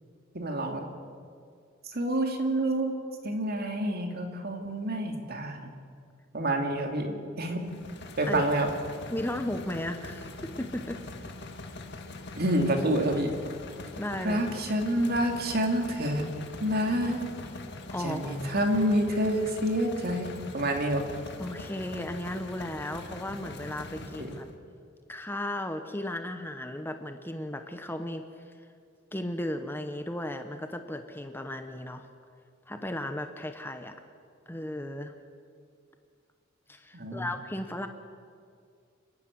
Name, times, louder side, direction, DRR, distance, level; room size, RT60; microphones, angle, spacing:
voice 1, 0.3-0.8 1.8-2.9 3.2-5.7 6.3-7.7 8.2-8.7 12.4-13.3 14.2-16.3 16.6-17.3 18.0-21.0 24.2-24.3 36.9-37.3, right 1 dB, 50° right, 4 dB, 2.6 m, -28 dB
sound 1, 7.6-24.5, left 2 dB, 60° left, 1.9 m, -43 dB
voice 2, 9.1-11.0 13.9-14.4 17.9-18.5 21.4-24.4 25.1-28.2 29.1-32.0 32.7-34.0 34.5-35.1 36.7-37.9, left 1 dB, 10° left, 7 dB, 1.0 m, -35 dB
29.0 x 10.5 x 9.7 m, 2.2 s
head